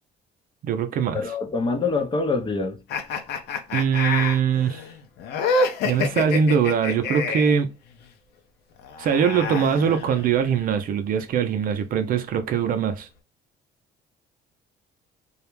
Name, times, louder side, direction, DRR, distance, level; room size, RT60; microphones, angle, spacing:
voice 1, 0.6-1.2 3.7-4.8 5.8-7.7 9.0-13.1, right 7 dB, 55° right, 0.5 m, -22 dB
voice 2, 1.1-2.8, left 4 dB, 30° left, 0.6 m, -25 dB
sound 1, 2.9-7.6 8.8-10.5, left 3 dB, 75° left, 0.6 m, -27 dB
2.3 x 2.0 x 3.0 m
cardioid pair, 110°, 17 cm